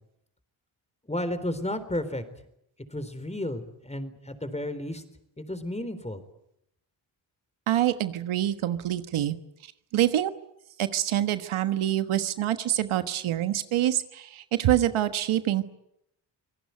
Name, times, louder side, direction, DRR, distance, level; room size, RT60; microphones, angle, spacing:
voice 1, 1.1-2.2 2.9-5.0 5.4-6.2, left 1 dB, 15° left, 12 dB, 3.9 m, -32 dB
voice 2, 7.7-9.4 9.9-10.3 10.8-15.6, right 12 dB, 80° right, 10 dB, 1.4 m, -26 dB
26.5 x 17.5 x 9.5 m, 0.80 s
cardioid pair, 60°, 48 cm